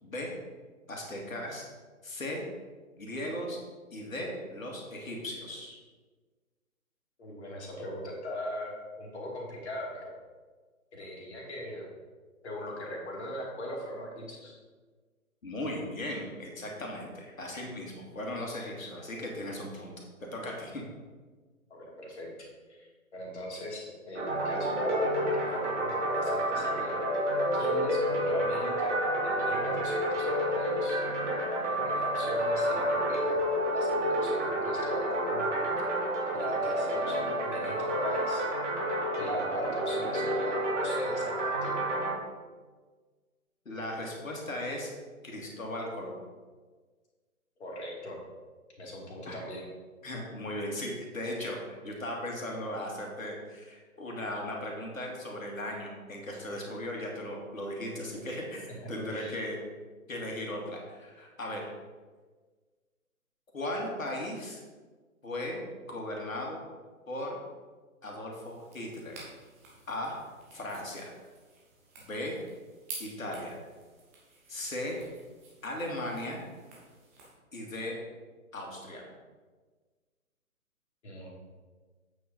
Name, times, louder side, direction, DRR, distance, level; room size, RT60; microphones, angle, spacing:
voice 1, 0.9-1.6 2.0-2.4 3.0-3.6 3.9-5.8 15.4-19.9 20.2-20.8 43.7-44.9 45.2-46.2 49.3-49.4 50.0-59.6 60.1-61.7 63.5-64.6 65.2-65.6 65.9-66.6 67.1-67.4 68.0-69.1 69.9-70.2 70.5-71.1 72.0-72.4 73.0-73.6 74.5-75.0 75.6-76.4 77.5-78.0 78.5-79.1, left 1 dB, 65° left, -1 dB, 2.3 m, -37 dB
voice 2, 7.2-10.1 10.9-11.9 12.4-14.5 21.7-22.3 22.7-27.0 27.5-31.0 31.7-33.4 33.7-35.5 36.3-38.4 39.2-41.8 47.6-48.2 48.8-49.7 58.8-59.4 81.0-81.3, equal, 50° left, -2 dB, 2.5 m, -40 dB
sound 1, 24.1-42.1, equal, 55° right, 2.7 m, -29 dB
sound 2, 68.3-77.3, right 3 dB, 10° right, 0.7 m, -51 dB
8.2 x 4.8 x 5.2 m, 1.4 s
figure-of-eight pair, 135°, 43 cm